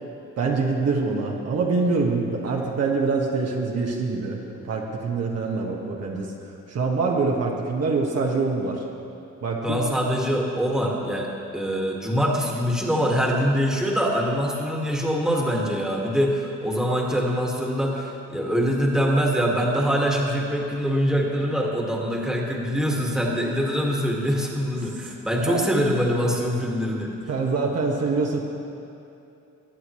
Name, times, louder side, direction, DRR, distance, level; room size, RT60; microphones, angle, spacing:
voice 1, 0.4-8.8 9.4-9.9 25.5-25.6 26.4-26.5 27.3-28.4, right 4 dB, 55° right, -1 dB, 1.5 m, -25 dB
voice 2, 9.6-27.1, equal, ahead, -2 dB, 1.9 m, -24 dB
20.5 x 8.2 x 3.1 m, 2.7 s
cardioid pair, 90°, 30 cm